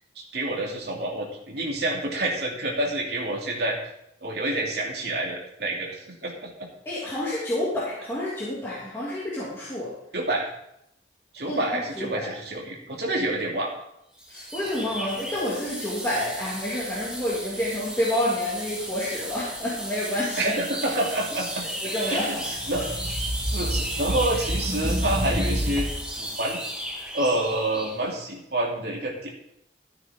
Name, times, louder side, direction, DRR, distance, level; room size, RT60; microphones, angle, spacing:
voice 1, 0.1-3.8 4.2-6.7 10.1-10.5 11.3-13.7 20.4-21.6 22.1-22.8 23.5-25.9 26.2-26.6 27.1-29.3, right 1 dB, 60° right, -3 dB, 2.9 m, -28 dB
voice 2, 6.9-9.9 11.4-11.6 12.0-12.3 14.3-20.5 21.9-22.4, left 1 dB, 15° left, -9 dB, 2.7 m, -29 dB
sound 1, 14.2-28.0, right 1 dB, 5° right, 2.5 m, -35 dB
sound 2, 22.5-26.1, equal, 20° right, 1.0 m, -28 dB
14.0 x 9.5 x 3.7 m, 0.78 s
head